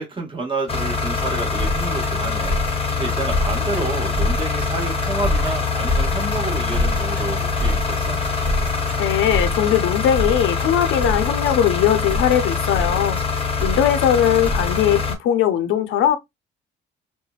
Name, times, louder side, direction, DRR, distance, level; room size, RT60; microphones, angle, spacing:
voice 1, 0.0-8.2, right 2 dB, 25° right, 1.2 m, -29 dB
sound 1, 0.7-15.1, left 5 dB, 30° left, 0.7 m, -24 dB
sound 2, 1.2-14.8, left 1 dB, 10° right, 0.7 m, -27 dB
voice 2, 9.0-13.2 13.6-16.2, left 10 dB, 90° left, 0.6 m, -19 dB
3.2 x 2.1 x 2.3 m
cardioid pair, 90°, 20 cm